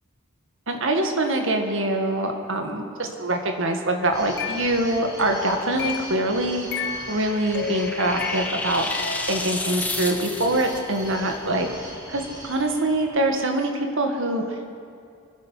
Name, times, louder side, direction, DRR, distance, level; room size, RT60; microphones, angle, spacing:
voice 1, 0.7-11.7 12.1-14.6, right 1 dB, 65° right, 4 dB, 1.7 m, -24 dB
sound 1, 4.0-6.2 6.7-9.5, left 7 dB, 55° left, 0.9 m, -33 dB
sound 2, 4.1-13.5, equal, 15° right, 3.8 m, -41 dB
sound 3, 6.6-10.8, left 2 dB, 10° left, 1.0 m, -31 dB
24.5 x 10.5 x 5.7 m, 2.4 s
head